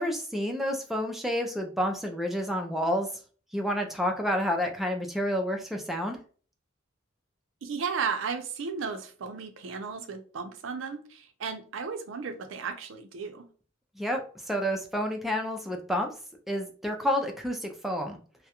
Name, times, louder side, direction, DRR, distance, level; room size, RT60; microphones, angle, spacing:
voice 1, 0.0-3.1 3.5-6.2 14.0-14.2 14.5-16.1 16.5-18.2, equal, ahead, 3 dB, 0.3 m, -29 dB
voice 2, 7.6-13.5, right 5 dB, 70° right, 6 dB, 0.5 m, -34 dB
2.3 x 2.0 x 2.8 m, 0.40 s
head